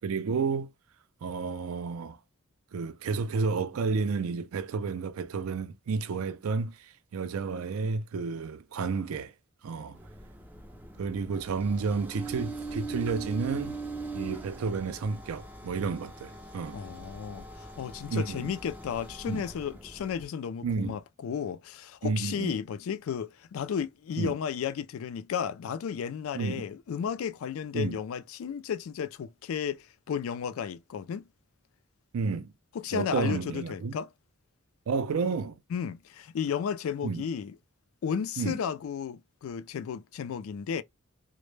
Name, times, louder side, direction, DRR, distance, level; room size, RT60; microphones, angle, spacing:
voice 1, 0.0-0.7 1.2-2.2 2.7-9.3 9.6-10.0 11.0-13.8 14.1-16.8 18.1-18.5 19.3-19.4 20.6-21.0 22.0-22.5 24.2-24.3 26.3-26.6 27.7-28.0 32.1-32.5 32.9-34.0 34.9-35.6 37.0-37.2 38.4-38.6, right 4 dB, 85° right, 0.4 m, -31 dB
sound 1, 9.9-20.3, right 3 dB, 10° right, 0.3 m, -41 dB
voice 2, 16.7-31.2 32.7-34.1 35.7-37.5 38.0-40.8, left 7 dB, 75° left, 0.3 m, -33 dB
2.1 x 2.0 x 3.1 m
head